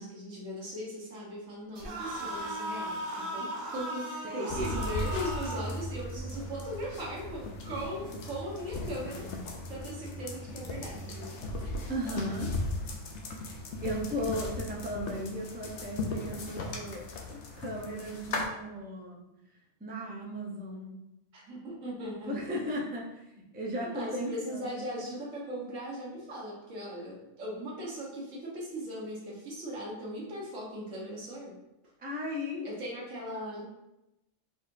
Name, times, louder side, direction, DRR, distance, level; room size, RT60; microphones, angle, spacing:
voice 1, 0.0-9.3 9.7-11.4 21.3-22.3 23.7-31.6 32.6-33.6, equal, 75° right, -4 dB, 1.6 m, -39 dB
sound 1, 1.8-5.8, right 1 dB, 45° right, 1.0 m, -37 dB
voice 2, 4.2-4.7 11.9-12.5 13.4-19.2 19.8-20.9 22.2-24.8 32.0-32.7, equal, 15° right, -2 dB, 0.4 m, -36 dB
sound 2, 4.5-18.4, left 2 dB, 65° left, 0.9 m, -37 dB
4.2 x 4.1 x 2.6 m, 0.92 s
omnidirectional pair, 1.3 m